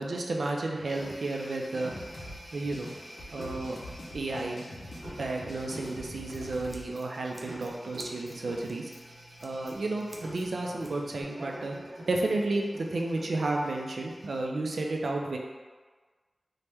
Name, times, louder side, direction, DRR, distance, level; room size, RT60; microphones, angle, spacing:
voice 1, 0.0-1.9 2.5-2.9 3.3-3.8 4.1-4.6 5.1-8.9 9.4-15.4, right 2 dB, 85° right, 0 dB, 0.3 m, -32 dB
sound 1, 0.8-14.4, equal, 45° right, 0.7 m, -46 dB
sound 2, 1.9-6.8, left 1 dB, 80° left, 0.5 m, -44 dB
Scissors, 5.8-11.2, right 1 dB, 5° right, 0.4 m, -53 dB
2.9 x 2.1 x 3.3 m, 1.4 s
wide cardioid pair, 75°, 0 cm